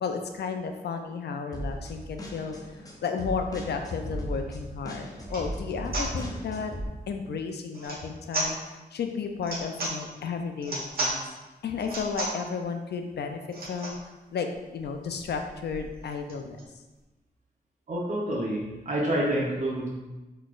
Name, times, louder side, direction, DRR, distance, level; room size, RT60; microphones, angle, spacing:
voice 1, 0.0-2.6 3.0-6.7 7.1-8.6 8.9-11.2 11.6-13.4 13.7-13.9 14.3-14.5 14.7-16.6, left 5 dB, 75° left, 5 dB, 0.4 m, -33 dB
sound 1, 1.5-6.9, equal, 20° left, 0.7 m, -37 dB
sound 2, 4.6-4.7 5.2-5.5 5.9-6.1 7.7-8.0 8.3-8.5 9.4-10.0 10.6-11.2 11.8-12.4 13.5-14.0 14.5-14.6 14.8-14.9 15.2-16.7, right 1 dB, 60° right, 1.2 m, -33 dB
voice 2, 17.9-19.9, right 1 dB, 45° right, -5 dB, 0.8 m, -28 dB
4.0 x 3.1 x 2.4 m, 1.1 s
cardioid pair, 65°, 17 cm